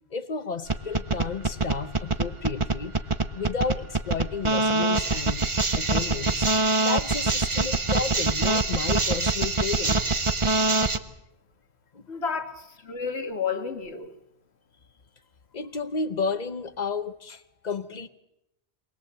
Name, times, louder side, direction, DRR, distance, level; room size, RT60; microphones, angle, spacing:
voice 1, 0.1-3.0 3.3-5.5 5.7-6.5 6.8-10.0 11.9-12.2 15.5-18.1, left 5 dB, 40° left, 11 dB, 1.1 m, -32 dB
sound 1, 0.7-11.0, right 3 dB, 30° right, 0.9 m, -24 dB
voice 2, 12.1-14.1, left 5 dB, 75° left, 7 dB, 2.0 m, -31 dB
23.5 x 19.5 x 7.9 m, 0.86 s
omnidirectional pair, 1.1 m